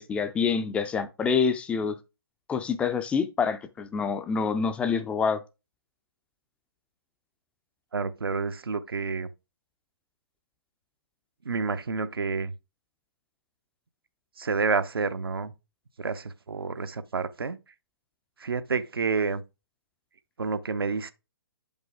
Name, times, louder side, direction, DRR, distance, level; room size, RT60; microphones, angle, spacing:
voice 1, 0.0-2.0 2.5-5.4, left 6 dB, 10° left, 0.4 m, -26 dB
voice 2, 7.9-9.3 11.4-12.5 14.4-15.5 16.0-17.6 18.4-19.4 20.4-21.1, right 4 dB, 75° right, 0.8 m, -29 dB
7.5 x 5.3 x 3.5 m
figure-of-eight pair, 130°, 12 cm